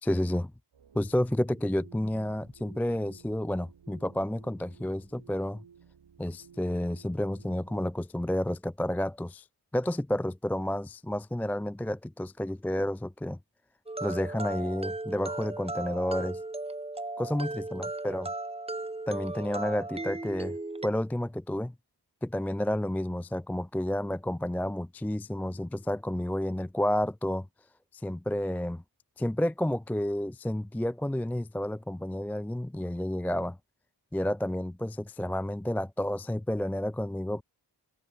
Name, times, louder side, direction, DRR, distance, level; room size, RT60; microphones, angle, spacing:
voice 1, 0.0-0.5 0.9-5.6 6.2-9.5 9.7-13.4 14.0-16.4 17.2-18.3 19.1-20.6 20.8-21.7 22.2-27.5 27.9-28.8 29.2-33.6 34.1-37.4, left 1 dB, 5° left, 0.4 m, -30 dB
sound 1, 0.7-7.9, right 7 dB, 90° right, 4.8 m, -56 dB
sound 2, 13.9-20.9, right 2 dB, 15° right, 1.0 m, -36 dB
wide cardioid pair, 85°, 43 cm